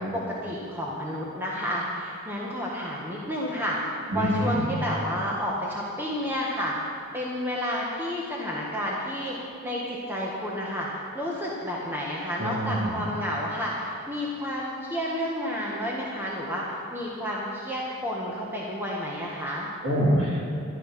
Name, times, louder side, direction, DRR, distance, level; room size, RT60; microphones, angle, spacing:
voice 1, 0.1-9.4 9.6-19.7, equal, 10° right, -4 dB, 1.4 m, -31 dB
voice 2, 4.1-4.7 12.4-13.0 19.8-20.5, equal, 50° right, -5 dB, 3.0 m, -25 dB
12.0 x 11.5 x 5.8 m, 2.5 s
head